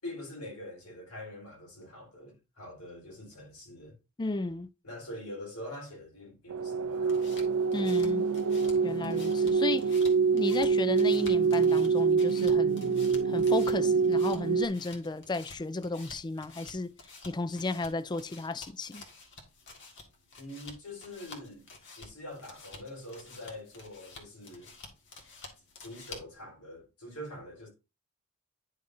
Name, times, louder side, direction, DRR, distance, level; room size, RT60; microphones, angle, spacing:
voice 1, 0.0-3.9 4.8-7.3 20.4-21.7 22.0-24.7 25.8-27.7, left 1 dB, 90° left, 4.0 m, -44 dB
voice 2, 4.2-4.7 7.7-8.2 8.8-10.0 10.3-13.0 13.3-16.9 17.3-19.0, left 2 dB, 20° left, 0.3 m, -34 dB
sound 1, 6.5-14.7, right 5 dB, 75° right, 0.4 m, -26 dB
sound 2, 6.8-26.4, left 3 dB, 55° left, 1.8 m, -51 dB
9.8 x 6.5 x 2.6 m
head